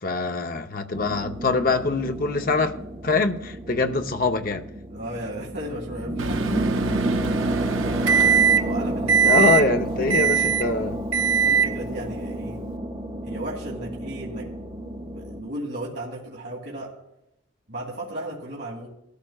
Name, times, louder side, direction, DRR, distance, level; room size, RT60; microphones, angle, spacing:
voice 1, 0.0-2.7 3.0-4.6 9.2-11.0, left 3 dB, 45° left, 0.8 m, -23 dB
sound 1, 0.9-15.4, right 1 dB, 25° right, 1.1 m, -30 dB
voice 2, 4.9-7.2 8.1-9.5 10.0-10.5 11.1-12.6 13.2-14.5 15.1-16.9 17.7-18.9, right 1 dB, 55° right, 2.1 m, -35 dB
Microwave oven, 6.2-8.8 9.1-9.6 10.1-10.7 11.1-11.7, right 7 dB, 75° right, 0.7 m, -21 dB
18.5 x 13.0 x 2.4 m
head